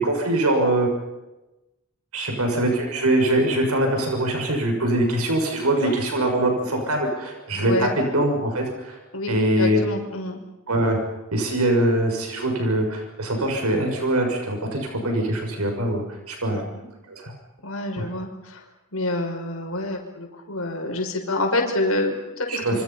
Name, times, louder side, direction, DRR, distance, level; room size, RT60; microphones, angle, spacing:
voice 1, 0.0-0.9 2.1-8.9 9.3-9.8 10.7-11.0 11.3-16.6 17.1-17.3 18.0-18.1 22.5-22.7, right 1 dB, 90° right, 3 dB, 6.4 m, -23 dB
voice 2, 7.6-7.9 9.1-10.4 16.5-16.9 17.6-18.6 18.9-22.8, left 2 dB, 70° left, 3 dB, 5.8 m, -27 dB
28.0 x 26.5 x 5.7 m, 1.0 s
head